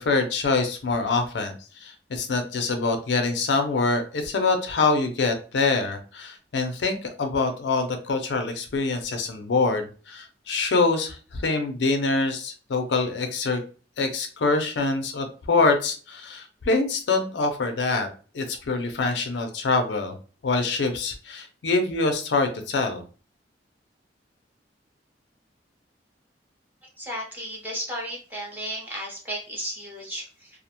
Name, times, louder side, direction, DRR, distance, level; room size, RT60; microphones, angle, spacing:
voice 1, 0.0-1.5 1.8-13.6 14.0-18.1 18.3-20.2 20.4-23.0, left 3 dB, 80° left, 6 dB, 0.5 m, -25 dB
voice 2, 27.0-30.5, equal, 10° right, -2 dB, 0.7 m, -34 dB
2.4 x 2.1 x 2.8 m, 0.38 s
head